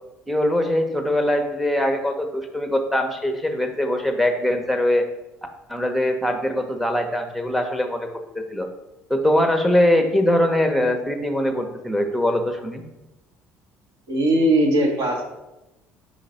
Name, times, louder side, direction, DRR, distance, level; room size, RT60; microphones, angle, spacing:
voice 1, 0.3-5.0 5.7-8.7 9.1-12.8, left 1 dB, ahead, 5 dB, 0.9 m, -22 dB
voice 2, 14.1-15.2, right 1 dB, 55° right, 2 dB, 1.3 m, -19 dB
5.1 x 5.0 x 4.2 m, 0.99 s
figure-of-eight pair, 55°, 7 cm